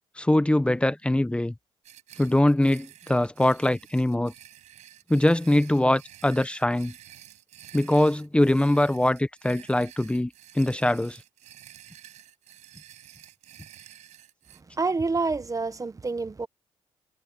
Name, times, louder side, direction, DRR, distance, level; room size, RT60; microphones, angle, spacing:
voice 1, 0.2-1.5 2.2-4.3 5.1-6.9 7.7-10.3 10.5-11.2, left 1 dB, 10° left, 1.1 m, -22 dB
sound 1, 1.8-14.6, right 12 dB, 85° right, 5.9 m, -50 dB
voice 2, 14.8-16.5, right 3 dB, 30° right, 1.2 m, -27 dB
cardioid pair, 75°, 12 cm